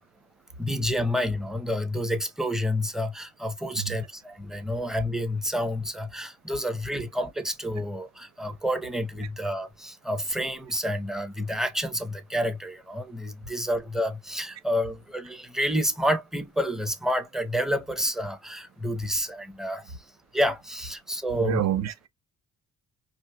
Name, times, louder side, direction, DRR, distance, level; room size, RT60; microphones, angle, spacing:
voice 1, 0.6-21.6, equal, ahead, 0.7 m, -29 dB
voice 2, 21.4-22.1, right 10 dB, 60° right, 0.8 m, -28 dB
4.5 x 3.0 x 2.3 m
cardioid pair, 90°, 30 cm